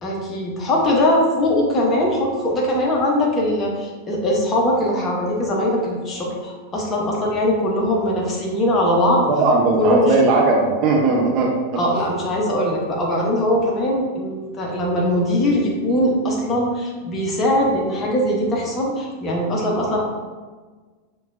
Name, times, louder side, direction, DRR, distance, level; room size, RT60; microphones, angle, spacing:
voice 1, 0.0-9.3 9.8-10.1 11.8-20.0, left 1 dB, 25° left, -2 dB, 0.8 m, -21 dB
voice 2, 9.3-11.5, right 3 dB, 35° right, -1 dB, 0.7 m, -17 dB
5.9 x 2.2 x 2.5 m, 1.4 s
figure-of-eight pair, 90°, 0 cm